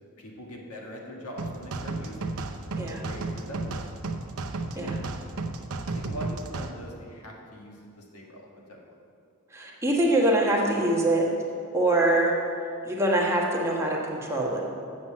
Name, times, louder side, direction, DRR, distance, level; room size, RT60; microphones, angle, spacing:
voice 1, 0.2-2.4 2.8-3.8 4.7-5.1 5.9-9.0, equal, 85° left, -1 dB, 1.6 m, -42 dB
sound 1, 1.4-6.7, right 3 dB, 75° right, 0.7 m, -33 dB
voice 2, 9.5-11.3 11.7-12.3 12.8-14.6, right 1 dB, 15° right, -3 dB, 1.3 m, -24 dB
7.8 x 7.4 x 7.3 m, 2.5 s
head